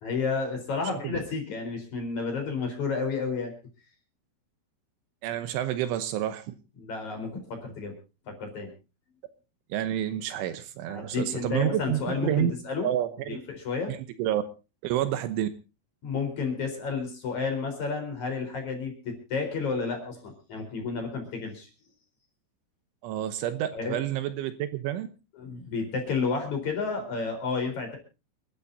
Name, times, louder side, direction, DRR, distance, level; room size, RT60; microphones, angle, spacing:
voice 1, 0.0-3.5 6.8-7.9 8.3-8.7 10.9-12.9 13.3-13.9 16.0-21.7 23.7-24.0 25.3-28.0, left 4 dB, 40° left, 4 dB, 5.0 m, -31 dB
voice 2, 5.2-6.5 9.7-12.5 12.8-13.4 13.9-14.4 14.8-15.5 23.0-25.1, right 11 dB, 75° right, 11 dB, 3.2 m, -29 dB
28.5 x 13.0 x 2.7 m, 0.31 s
omnidirectional pair, 5.8 m